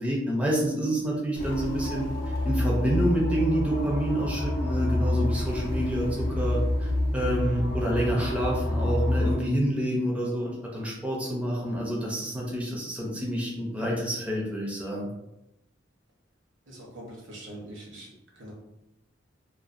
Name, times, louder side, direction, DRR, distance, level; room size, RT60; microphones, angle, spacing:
voice 1, 0.0-2.0 2.4-15.1, right 1 dB, 5° right, -4 dB, 0.4 m, -28 dB
sound 1, 1.4-9.4, left 1 dB, 50° left, 0.5 m, -28 dB
voice 2, 16.7-18.1 18.4-18.5, right 1 dB, 70° right, -2 dB, 0.8 m, -43 dB
2.4 x 2.3 x 2.4 m, 0.92 s
head